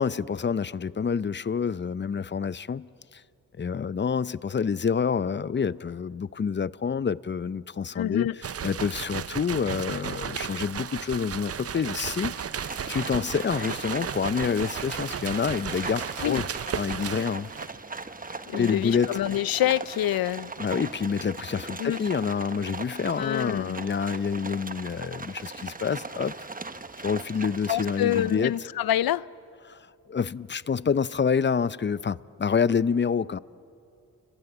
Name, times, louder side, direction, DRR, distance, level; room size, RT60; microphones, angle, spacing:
voice 1, 0.0-3.2 3.6-8.3 8.6-16.5 16.8-17.5 18.6-19.2 20.6-26.3 27.0-28.5 29.7-33.4, left 6 dB, 30° left, 0.6 m, -28 dB
voice 2, 8.0-8.4 16.2-16.4 18.5-20.5 21.8-22.0 23.2-23.8 27.7-29.3, left 12 dB, 80° left, 0.6 m, -26 dB
sound 1, 8.4-17.8, right 8 dB, 40° right, 0.6 m, -35 dB
Livestock farm animals working animals, 12.3-28.6, right 3 dB, 25° right, 1.1 m, -39 dB
29.5 x 21.0 x 8.1 m
cardioid pair, 55°, 35 cm